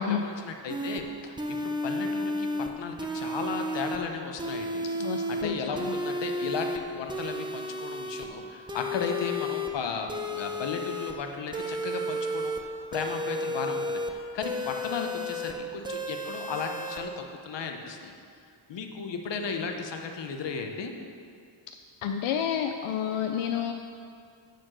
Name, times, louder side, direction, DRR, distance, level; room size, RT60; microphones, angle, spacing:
voice 1, 0.0-2.5 2.8-18.1 18.7-20.9, left 5 dB, 60° left, 4 dB, 0.9 m, -35 dB
sound 1, 0.7-1.0 1.4-2.7 3.0-4.0 4.4-5.4 5.7-6.8 7.1-8.2 8.7-9.7 10.1-11.1 11.5-12.6 12.9-14.1 14.4-15.5 15.8-17.0, left 1 dB, 10° right, 0.6 m, -32 dB
voice 2, 5.0-5.5 22.0-23.7, left 9 dB, 85° left, 5 dB, 0.6 m, -29 dB
9.1 x 4.4 x 6.1 m, 2.4 s
cardioid pair, 110°, 49 cm